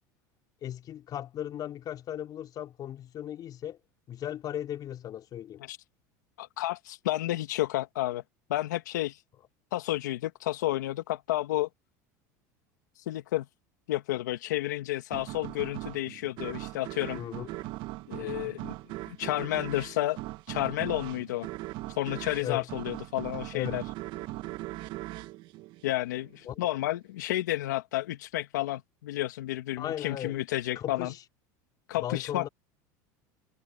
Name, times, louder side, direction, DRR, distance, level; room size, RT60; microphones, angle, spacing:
voice 1, 0.6-3.8 4.1-5.6 17.2-17.5 18.2-18.6 22.4-22.7 23.5-23.8 26.5-26.7 29.8-30.4 30.8-31.2 32.0-32.5, left 11 dB, 45° left, 4.1 m, -37 dB
voice 2, 6.4-8.2 8.5-9.2 9.7-11.7 13.1-13.4 13.9-17.2 18.1-18.7 19.1-20.2 20.5-21.5 22.0-23.8 25.8-31.1 31.9-32.5, left 15 dB, 90° left, 1.6 m, -31 dB
sound 1, 15.1-26.4, right 18 dB, 60° right, 1.2 m, -40 dB
supercardioid pair, 105°, 9 cm